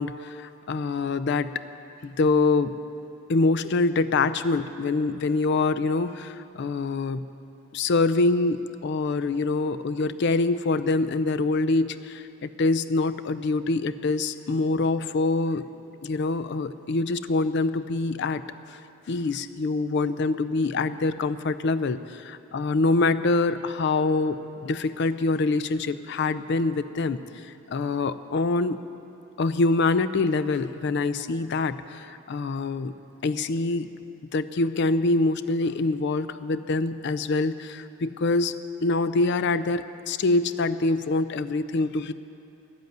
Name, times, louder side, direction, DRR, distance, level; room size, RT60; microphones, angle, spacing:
voice 1, 0.0-1.5 2.0-2.8 3.3-7.3 7.7-15.7 16.0-18.4 18.7-18.8 19.1-28.8 29.4-32.9 33.2-33.9 34.3-42.1, left 3 dB, 50° left, 13 dB, 0.4 m, -25 dB
11.5 x 7.9 x 9.3 m, 2.7 s
head